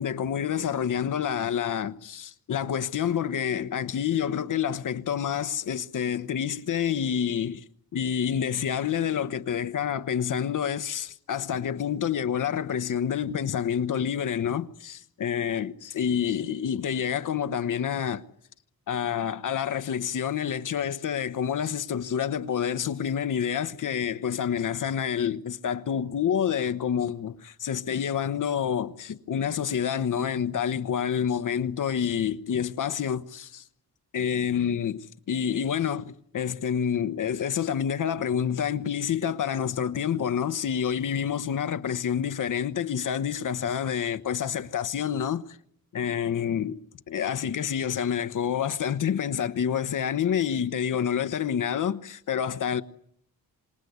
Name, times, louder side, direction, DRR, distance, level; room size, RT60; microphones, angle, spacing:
voice 1, 0.0-7.6 7.9-18.2 18.9-33.6 34.1-45.6 45.9-46.8 47.1-52.8, left 8 dB, 60° left, 1.1 m, -28 dB
26.5 x 20.5 x 9.5 m
wide cardioid pair, 130°, 36 cm